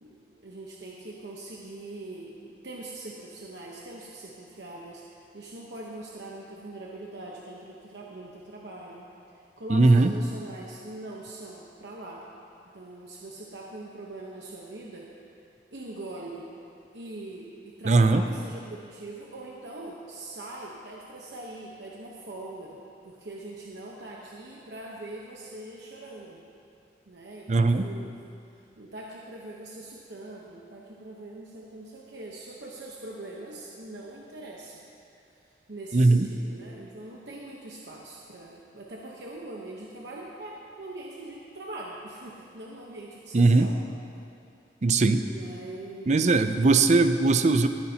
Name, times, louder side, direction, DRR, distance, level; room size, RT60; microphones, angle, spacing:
voice 1, 0.0-9.1 9.6-12.2 12.7-15.1 15.7-16.5 16.9-26.4 27.1-28.2 28.8-34.8 35.1-35.3 35.7-43.8 45.2-46.4, right 2 dB, 70° right, -3 dB, 1.0 m, -42 dB
voice 2, 9.7-10.1 17.9-18.2 27.5-27.8 35.9-36.3 43.3-43.7 44.8-45.2 46.1-47.7, right 3 dB, 40° right, 9 dB, 0.5 m, -19 dB
20.5 x 9.8 x 2.9 m, 2.5 s
head